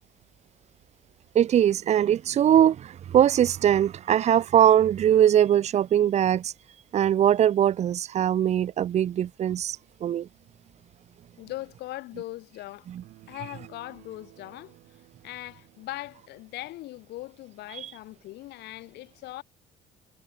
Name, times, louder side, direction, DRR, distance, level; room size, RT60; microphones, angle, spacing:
voice 1, 1.3-6.5 6.9-10.3 12.9-13.0, right 10 dB, 40° right, 0.5 m, -21 dB
voice 2, 11.4-12.9 13.3-14.8 15.2-19.4, left 17 dB, 80° left, 7.5 m, -40 dB
sound 1, 13.0-16.6, right 17 dB, 80° right, 7.7 m, -55 dB
cardioid pair, 110°, 17 cm